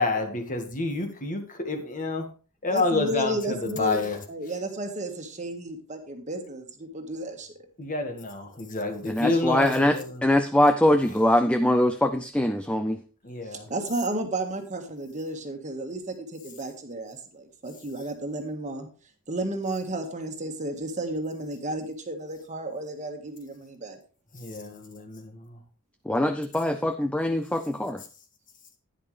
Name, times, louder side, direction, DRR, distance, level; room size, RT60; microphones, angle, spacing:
voice 1, 0.0-2.3 2.6-4.2 7.8-10.2 13.2-13.7 24.3-25.6, left 3 dB, 35° left, 5 dB, 1.7 m, -29 dB
voice 2, 2.7-4.0 4.3-7.5 13.5-18.9 19.3-24.0, right 1 dB, 35° right, 5 dB, 1.6 m, -33 dB
voice 3, 9.1-13.0 26.1-28.0, left 1 dB, 5° left, 8 dB, 0.4 m, -23 dB
11.0 x 10.0 x 3.3 m, 0.36 s
head